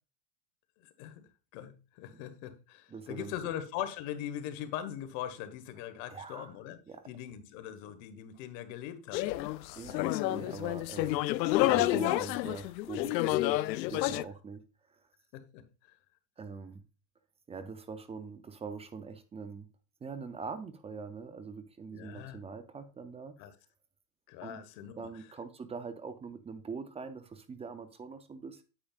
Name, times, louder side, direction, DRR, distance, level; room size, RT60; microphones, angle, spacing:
voice 1, 1.0-6.8 7.1-9.8 15.3-15.6 21.9-22.4 23.4-23.5 24.3-25.1, left 10 dB, 55° left, 1.5 m, -41 dB
voice 2, 2.9-3.3 6.1-6.5 6.9-7.0 9.7-11.2 11.6-13.6 13.9-14.6 14.9-15.0 16.4-16.8 17.5-19.7 20.0-23.3 24.4-24.6 25.0-28.6, right 5 dB, 15° right, 0.5 m, -43 dB
sound 1, 9.1-14.2, left 17 dB, 90° left, 0.6 m, -29 dB
8.8 x 8.4 x 2.4 m
supercardioid pair, 125°, 49 cm